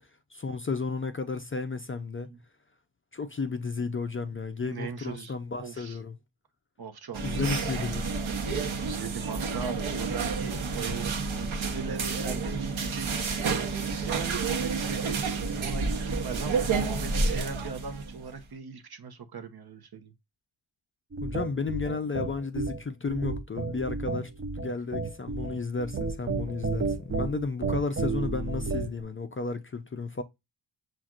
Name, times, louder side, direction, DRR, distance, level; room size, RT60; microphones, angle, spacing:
voice 1, 0.3-2.3 3.1-6.2 7.2-8.2 21.2-30.2, left 4 dB, 30° left, 0.4 m, -33 dB
voice 2, 4.6-6.0 6.8-7.8 8.7-13.7 14.0-20.1, right 5 dB, 55° right, 0.9 m, -39 dB
sound 1, 7.1-18.3, right 4 dB, 90° right, 1.0 m, -30 dB
sound 2, 21.1-29.0, right 3 dB, 30° right, 0.6 m, -32 dB
7.3 x 2.5 x 2.4 m
wide cardioid pair, 130°, 46 cm